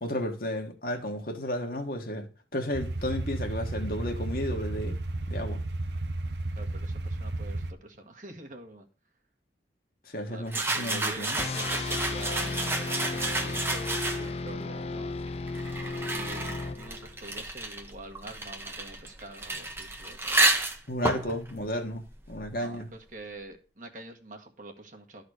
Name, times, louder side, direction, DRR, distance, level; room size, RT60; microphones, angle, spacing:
voice 1, 0.0-2.3 2.5-4.9 5.3-5.6 10.1-11.4 20.9-22.9, equal, 50° left, 1.6 m, -33 dB
sound 1, 2.7-7.7, right 2 dB, 70° right, 0.8 m, -33 dB
voice 2, 6.5-8.9 10.3-15.1 16.1-20.6 22.5-25.2, right 2 dB, 45° right, 1.5 m, -45 dB
sound 2, 10.5-14.5 15.3-22.7, right 2 dB, 15° right, 0.9 m, -31 dB
sound 3, 11.4-17.2, left 3 dB, 35° left, 0.4 m, -34 dB
12.0 x 4.1 x 6.4 m
head